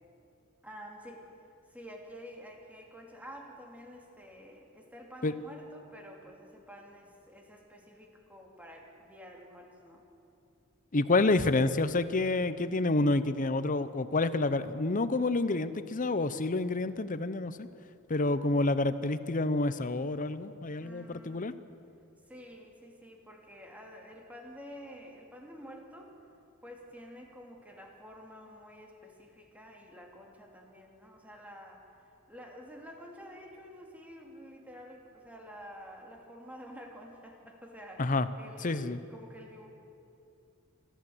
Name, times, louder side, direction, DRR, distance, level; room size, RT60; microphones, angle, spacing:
voice 1, 0.6-1.3 1.7-10.0 20.8-21.5 22.3-26.1 26.6-39.7, equal, 5° right, 1 dB, 2.7 m, -49 dB
voice 2, 10.9-17.7 18.1-21.5 38.0-38.3 38.6-39.0, left 2 dB, 40° left, 13 dB, 0.8 m, -28 dB
28.0 x 12.5 x 7.9 m, 2.7 s
head